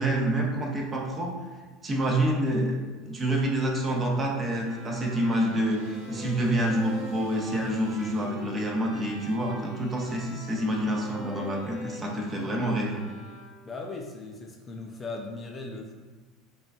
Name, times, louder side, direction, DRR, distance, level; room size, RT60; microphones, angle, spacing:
voice 1, 0.0-1.3 1.8-2.8 3.0-13.0, right 1 dB, 25° right, 0 dB, 0.7 m, -27 dB
sound 1, 3.7-8.3, right 1 dB, 85° right, 1.0 m, -52 dB
sound 2, 4.6-13.8, left 1 dB, 5° right, 1.4 m, -44 dB
voice 2, 13.7-15.9, left 3 dB, 25° left, 1 dB, 0.4 m, -38 dB
5.0 x 2.4 x 2.3 m, 1.4 s
supercardioid pair, 100°, 0 cm